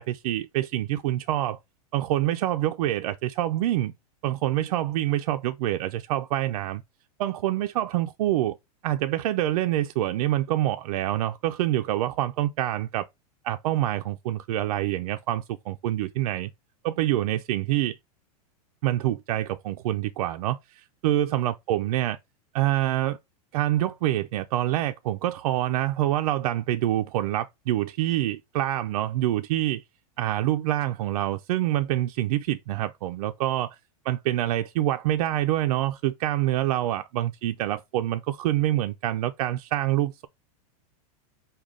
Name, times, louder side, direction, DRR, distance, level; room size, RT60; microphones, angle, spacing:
voice 1, 0.0-1.6 1.9-3.9 4.2-6.8 7.2-8.6 8.8-13.1 13.4-16.5 16.8-18.0 18.8-22.2 22.5-23.2 23.5-29.8 30.2-33.8 34.0-40.3, right 13 dB, 70° right, 0.4 m, -26 dB
5.0 x 2.3 x 3.6 m
hypercardioid pair, 120°, 20 cm